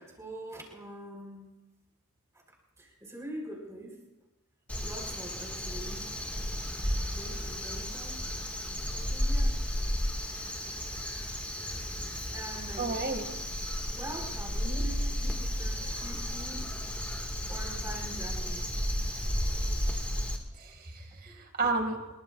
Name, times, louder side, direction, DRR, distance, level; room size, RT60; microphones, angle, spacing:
voice 1, 0.0-1.5 2.8-4.0 4.8-6.1 7.1-8.2 9.1-9.6 12.1-12.9 13.9-18.7 19.4-20.1 20.5-20.8 21.2-21.5, right 1 dB, 15° right, -1 dB, 4.5 m, -44 dB
Crow, 4.7-20.4, equal, 5° left, 1.9 m, -33 dB
voice 2, 12.8-13.3 14.6-14.8 20.6-22.0, right 3 dB, 45° right, 4 dB, 2.3 m, -32 dB
25.0 x 22.0 x 2.5 m, 1.0 s
head